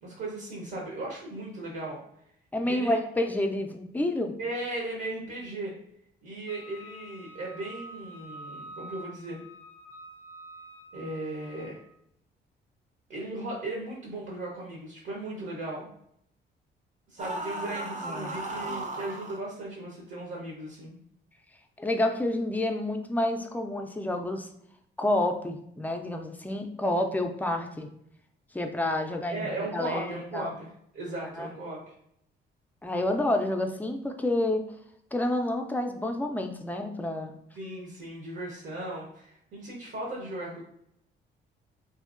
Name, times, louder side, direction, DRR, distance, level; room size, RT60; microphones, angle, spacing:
voice 1, 0.0-2.0 2.6-3.0 4.4-5.7 6.2-9.4 10.9-11.8 13.1-15.9 17.1-20.9 29.3-31.9 37.5-40.6, right 2 dB, 65° right, -3 dB, 0.8 m, -37 dB
voice 2, 2.5-4.4 17.6-17.7 18.0-18.4 21.8-24.5 25.0-27.9 28.5-30.5 31.4-31.5 32.8-34.6 35.1-37.3, left 1 dB, 10° left, 4 dB, 0.4 m, -29 dB
Wind instrument woodwind instrument, 6.5-11.8, right 1 dB, 80° left, 0.4 m, -47 dB
sound 1, 17.2-19.4, right 2 dB, 40° right, 0.6 m, -35 dB
2.8 x 2.6 x 2.4 m, 0.73 s
cardioid pair, 90°, 20 cm